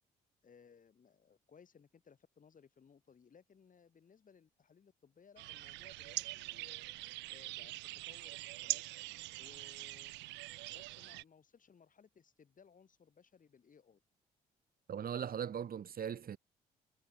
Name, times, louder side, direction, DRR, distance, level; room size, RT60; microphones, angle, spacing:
voice 1, 0.4-6.9 7.3-8.8 9.4-10.3 10.7-14.0, left 6 dB, 45° left, 7.3 m, -63 dB
sound 1, 5.4-11.2, right 20 dB, 75° right, 0.9 m, -43 dB
voice 2, 14.9-16.4, right 8 dB, 55° right, 2.6 m, -39 dB
hypercardioid pair, 50°, 18 cm